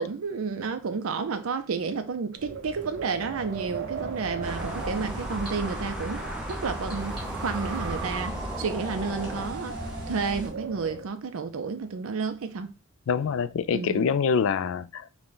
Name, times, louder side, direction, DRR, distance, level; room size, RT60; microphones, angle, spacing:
voice 1, 0.0-9.8 10.1-12.7 13.7-14.0, right 5 dB, 75° right, 0.5 m, -31 dB
Wind, 2.4-11.1, right 4 dB, 55° right, 0.9 m, -38 dB
sound 1, 4.4-9.5, equal, 5° right, 0.5 m, -38 dB
sound 2, 4.4-10.5, equal, 25° right, 2.1 m, -38 dB
voice 2, 13.1-15.1, left 6 dB, 70° left, 0.4 m, -25 dB
6.0 x 2.2 x 3.8 m
head